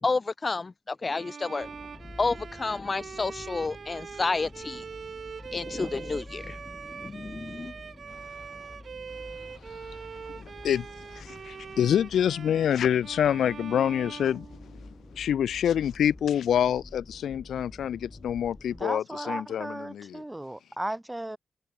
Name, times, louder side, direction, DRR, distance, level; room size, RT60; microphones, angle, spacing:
voice 1, 0.0-1.7 2.2-4.8 5.5-7.7, left 3 dB, 35° left, 1.8 m, -30 dB
Bowed string instrument, 1.1-15.2, right 6 dB, 60° right, 6.4 m, -43 dB
sound 1, 1.6-18.8, left 2 dB, 15° left, 5.7 m, -48 dB
voice 2, 10.3-10.9 11.1-14.5 14.8-14.9 15.1-20.2, left 9 dB, 90° left, 0.7 m, -26 dB
voice 3, 18.8-21.4, right 1 dB, 10° right, 2.7 m, -35 dB
cardioid pair, 80°, 0 cm